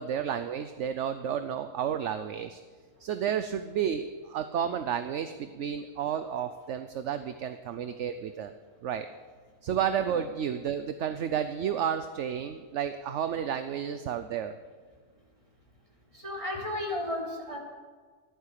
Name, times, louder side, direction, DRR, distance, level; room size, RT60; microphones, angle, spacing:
voice 1, 0.0-2.6 3.0-8.5 8.8-9.1 9.6-14.6, right 8 dB, 60° right, 10 dB, 0.9 m, -31 dB
voice 2, 16.2-17.6, left 1 dB, 20° right, -2 dB, 3.4 m, -33 dB
14.0 x 12.0 x 6.6 m, 1.5 s
omnidirectional pair, 1.5 m